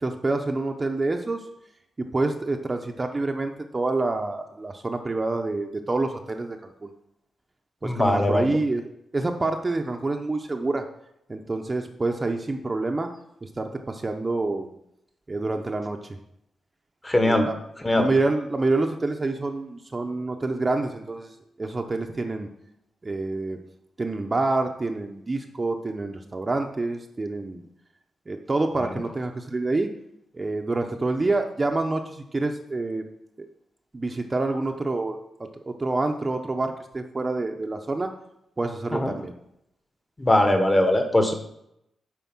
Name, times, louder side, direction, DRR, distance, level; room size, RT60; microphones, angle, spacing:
voice 1, 0.0-1.4 2.0-6.9 7.8-8.9 9.1-10.8 11.3-13.1 13.4-14.7 15.3-16.2 17.2-17.5 18.0-21.3 21.6-22.5 23.0-23.6 24.0-27.6 28.3-29.9 30.3-33.1 33.4-33.5 33.9-35.2 35.7-38.1 38.6-39.3, right 2 dB, 25° right, 4 dB, 0.8 m, -27 dB
voice 2, 7.8-8.5 17.0-17.5 17.8-18.1 38.9-39.1 40.2-41.3, left 1 dB, 20° left, 5 dB, 1.2 m, -20 dB
9.3 x 4.6 x 6.1 m, 0.78 s
cardioid pair, 115°, 0 cm